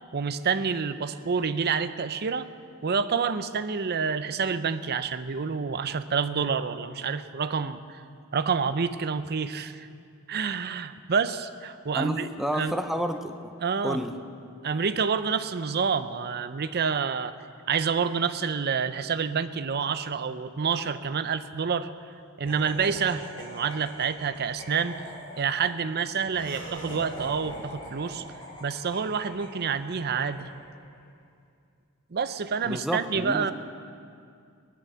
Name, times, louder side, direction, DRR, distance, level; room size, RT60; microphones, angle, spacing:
voice 1, 0.1-2.5 2.8-8.0 8.3-9.9 10.3-12.3 12.5-12.7 13.6-14.0 14.6-17.3 17.7-21.9 22.4-25.0 25.4-28.2 28.6-30.5 32.1-33.5, right 6 dB, 45° right, 11 dB, 0.6 m, -28 dB
voice 2, 11.9-13.5 13.8-14.1 32.7-33.5, equal, ahead, 6 dB, 0.6 m, -30 dB
Laughter, 22.5-30.8, equal, 25° left, 4.7 m, -43 dB
18.5 x 11.0 x 6.9 m, 2.3 s
head